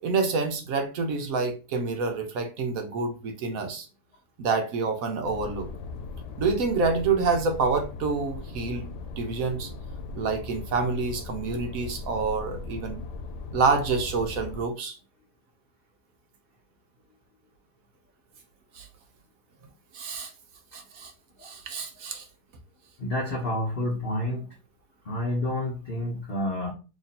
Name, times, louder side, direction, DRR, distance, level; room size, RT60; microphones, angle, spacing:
voice 1, 0.0-3.9 4.4-5.7 6.4-8.9 9.2-9.7 10.1-13.0 13.5-15.0 18.7-18.9 19.9-20.3 20.7-21.1 21.4-22.3, right 4 dB, 65° right, 5 dB, 1.0 m, -27 dB
sound 1, 5.2-14.6, left 3 dB, 85° left, 1.2 m, -38 dB
voice 2, 23.0-24.5 25.0-26.7, left 1 dB, 50° left, -2 dB, 0.7 m, -29 dB
3.0 x 2.7 x 4.0 m, 0.33 s
omnidirectional pair, 1.8 m